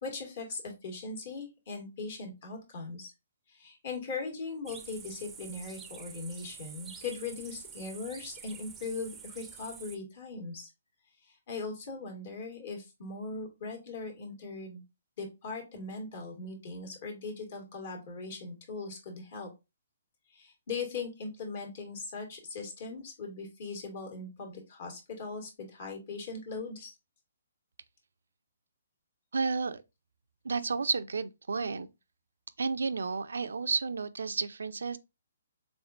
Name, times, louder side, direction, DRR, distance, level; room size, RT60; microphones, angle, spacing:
voice 1, 0.0-3.1 3.5-10.7 11.3-14.8 15.2-19.5 20.3-26.9, left 4 dB, 55° left, 1.7 m, -40 dB
sound 1, 4.7-10.0, right 6 dB, 15° right, 0.5 m, -48 dB
voice 2, 29.3-29.8 30.4-31.9 32.6-35.0, right 4 dB, 80° right, 0.4 m, -31 dB
3.7 x 3.6 x 2.4 m
hypercardioid pair, 145°, 0 cm